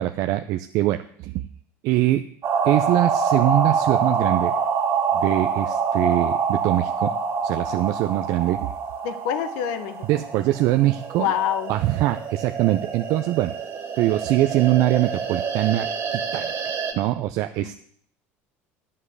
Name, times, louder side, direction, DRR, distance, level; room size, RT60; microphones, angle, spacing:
voice 1, 0.0-1.4 1.8-2.3 2.6-4.5 5.1-7.1 7.4-8.7 10.1-11.3 11.7-13.5 14.0-15.9 16.1-16.5 16.9-17.7, right 15 dB, 65° right, 7 dB, 0.5 m, -22 dB
sound 1, 2.4-16.9, right 6 dB, 40° right, 2.7 m, -26 dB
voice 2, 9.0-10.0 11.2-11.7 17.6-17.7, left 10 dB, 75° left, 10 dB, 1.1 m, -26 dB
10.0 x 5.6 x 8.0 m, 0.62 s
supercardioid pair, 100°, 6 cm